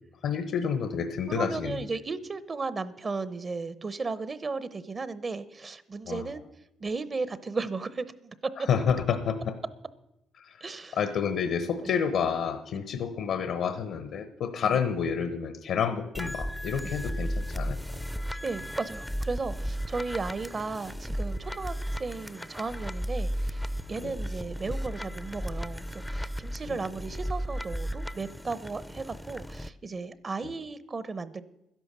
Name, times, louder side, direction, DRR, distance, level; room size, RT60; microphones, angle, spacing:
voice 1, 0.2-1.8 6.1-6.2 8.6-9.6 10.4-10.6 10.9-17.8 24.0-24.2 26.7-26.8 30.4-30.5, left 7 dB, 75° left, 11 dB, 1.0 m, -29 dB
voice 2, 1.3-6.4 6.8-8.3 10.6-11.0 11.8-11.9 14.6-14.8 16.8-16.9 18.3-31.4, right 4 dB, 35° right, 16 dB, 0.8 m, -35 dB
sound 1, 16.1-29.7, equal, 5° left, 0.5 m, -35 dB
12.0 x 11.0 x 6.7 m, 0.90 s
cardioid pair, 90°, 0 cm